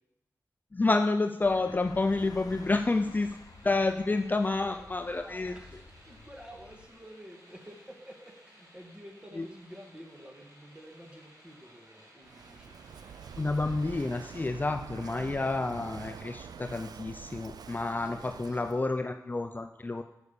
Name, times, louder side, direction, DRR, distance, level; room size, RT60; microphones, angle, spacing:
voice 1, 0.7-3.3 3.6-5.5 9.4-9.5 13.4-20.0, left 3 dB, 25° left, 7 dB, 0.4 m, -29 dB
sound 1, 1.4-6.9, left 3 dB, 75° left, 0.8 m, -51 dB
voice 2, 2.3-3.2 4.6-12.8 18.0-18.7, equal, 15° right, 2 dB, 1.7 m, -50 dB
sound 2, 2.4-14.5, equal, 70° right, 3.8 m, -58 dB
Walk footsteps / Wind / Waves surf, 12.2-18.9, right 7 dB, 85° right, 0.3 m, -46 dB
9.4 x 5.4 x 6.8 m, 0.90 s
wide cardioid pair, 75°, 7 cm